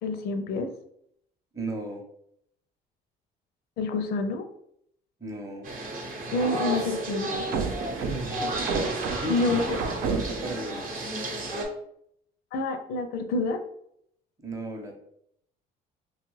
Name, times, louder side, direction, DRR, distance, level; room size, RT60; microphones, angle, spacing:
voice 1, 0.0-0.7 3.8-4.5 6.3-7.5 9.3-9.8 12.5-13.6, left 3 dB, 70° left, 8 dB, 0.5 m, -27 dB
voice 2, 1.5-2.0 5.2-5.7 8.0-8.7 9.1-10.8 14.4-15.0, right 2 dB, 20° right, 1 dB, 0.7 m, -35 dB
sound 1, 5.6-11.6, right 2 dB, 55° right, 0.8 m, -32 dB
sound 2, 7.3-10.6, right 5 dB, 90° right, 0.4 m, -31 dB
2.9 x 2.4 x 3.1 m, 0.70 s
cardioid pair, 110°, 17 cm